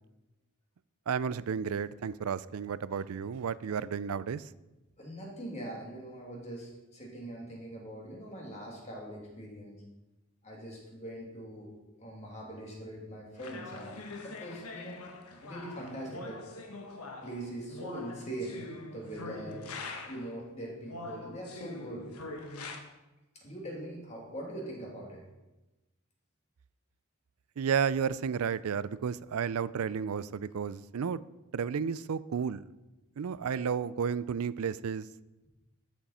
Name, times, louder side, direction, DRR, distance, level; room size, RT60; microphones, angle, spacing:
voice 1, 1.1-4.4 27.6-31.2 31.5-32.7 33.2-35.1, right 6 dB, 70° right, 18 dB, 0.4 m, -32 dB
voice 2, 5.0-9.7 10.4-15.0 15.4-16.4 17.2-18.6 18.9-19.6 20.1-22.0 23.4-25.2, right 1 dB, 30° left, -2 dB, 2.5 m, -42 dB
sound 1, 13.4-20.4 20.9-22.8, left 3 dB, 75° left, 1.3 m, -44 dB
13.0 x 7.3 x 4.3 m, 1.0 s
head